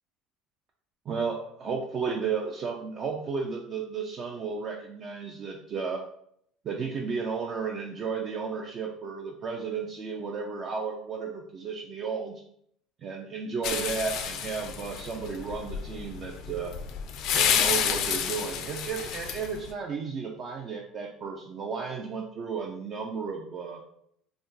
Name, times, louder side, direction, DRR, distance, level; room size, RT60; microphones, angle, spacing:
voice 1, 1.1-6.0 6.6-12.4 13.0-16.7 17.3-23.8, right 5 dB, 45° right, 0 dB, 0.4 m, -33 dB
sound 1, 13.6-19.7, left 8 dB, 65° left, 0.3 m, -30 dB
2.4 x 2.1 x 3.8 m, 0.70 s
hypercardioid pair, 80°, 0 cm